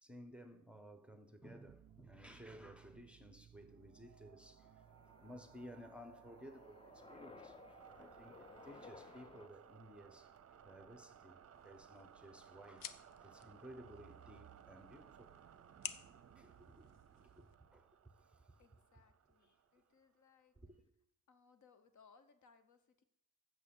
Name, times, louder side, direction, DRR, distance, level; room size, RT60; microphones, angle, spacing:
voice 1, 0.0-4.8 5.2-11.4 11.6-12.9 13.2-15.3 16.4-18.6 20.6-20.8, equal, 5° right, 0.8 m, -57 dB
sound 1, 1.7-20.1, right 9 dB, 45° right, 0.6 m, -61 dB
sound 2, 4.4-9.5, left 4 dB, 15° left, 0.4 m, -59 dB
sound 3, 11.5-17.6, left 9 dB, 80° left, 0.6 m, -54 dB
voice 2, 18.6-20.6 21.3-23.0, left 5 dB, 60° left, 1.0 m, -68 dB
8.3 x 7.1 x 6.9 m
wide cardioid pair, 140°, 33 cm